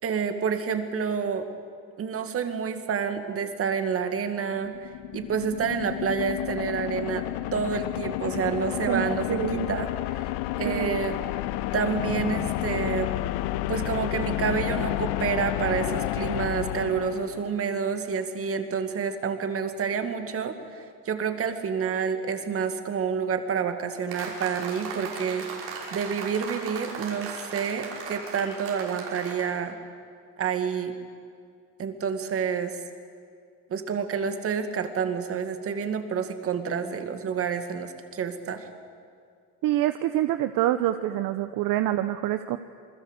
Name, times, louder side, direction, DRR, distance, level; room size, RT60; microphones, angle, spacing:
voice 1, 0.0-1.5 2.0-7.2 7.5-11.2 11.7-13.1 13.7-25.5 25.9-29.8 30.4-30.9 31.8-32.8 33.7-38.7, right 6 dB, 35° right, 8 dB, 2.2 m, -29 dB
sound 1, 4.6-17.7, left 15 dB, 80° left, 0.9 m, -30 dB
voice 2, 8.9-9.8 10.6-11.0 39.6-42.6, right 13 dB, 60° right, 10 dB, 0.9 m, -26 dB
sound 2, 24.1-29.5, right 5 dB, 80° right, 6.1 m, -37 dB
28.0 x 20.5 x 8.2 m, 2.2 s
cardioid pair, 135°, 37 cm